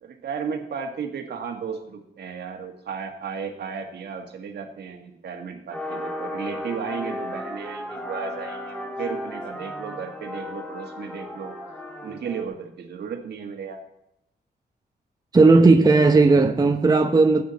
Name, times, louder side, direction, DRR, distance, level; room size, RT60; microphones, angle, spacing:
voice 1, 0.0-11.6 12.0-13.8, right 6 dB, 80° right, 1.7 m, -34 dB
sound 1, 5.7-12.4, left 1 dB, 5° left, 1.5 m, -35 dB
voice 2, 15.3-17.4, right 3 dB, 20° right, 0.8 m, -15 dB
16.5 x 8.6 x 4.1 m
wide cardioid pair, 145°, 17 cm